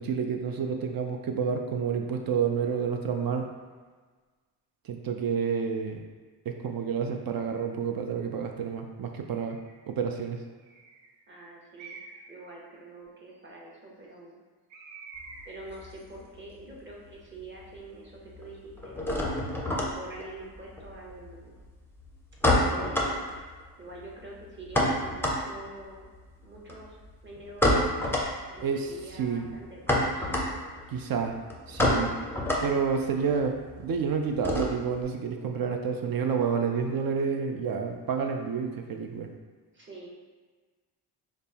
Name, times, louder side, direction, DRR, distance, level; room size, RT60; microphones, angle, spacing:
voice 1, 0.0-3.5 4.8-6.0 6.5-9.6 9.9-10.4 28.6-29.6 30.9-31.4 31.7-32.1 32.6-39.3, right 6 dB, 55° right, 4 dB, 0.5 m, -29 dB
Bird, 9.4-9.8 10.6-11.1 11.8-12.4 14.7-15.7, right 4 dB, 80° right, 0.8 m, -47 dB
voice 2, 11.3-12.0 12.3-14.4 15.5-19.2 19.7-21.5 22.5-23.2 23.8-26.1 26.4-27.0 27.2-27.8 28.5-30.4 39.7-40.1, right 2 dB, 25° right, -3 dB, 0.8 m, -45 dB
sound 1, 15.2-16.8 17.0-17.8 18.0-35.0, left 1 dB, 5° left, 0.5 m, -29 dB
5.2 x 2.0 x 2.8 m, 1.4 s
cardioid pair, 90°, 44 cm